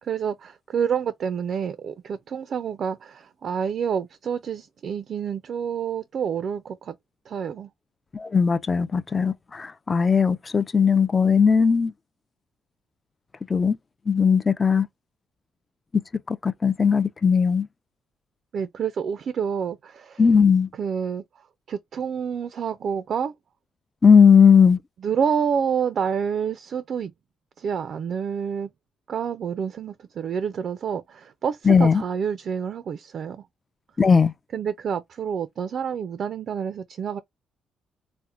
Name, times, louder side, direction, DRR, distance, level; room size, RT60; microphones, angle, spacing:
voice 1, 0.0-7.0 7.3-7.7 18.5-20.2 20.7-21.2 21.7-23.3 25.0-27.1 27.6-28.7 29.1-33.5 34.5-37.2, right 7 dB, 60° right, 0.3 m, -28 dB
voice 2, 8.1-11.9 13.5-13.8 14.1-14.9 16.3-17.7 20.2-20.7 24.0-24.8 31.7-32.0 34.0-34.3, left 6 dB, 30° left, 0.3 m, -18 dB
4.2 x 2.0 x 2.3 m
cardioid pair, 90°, 0 cm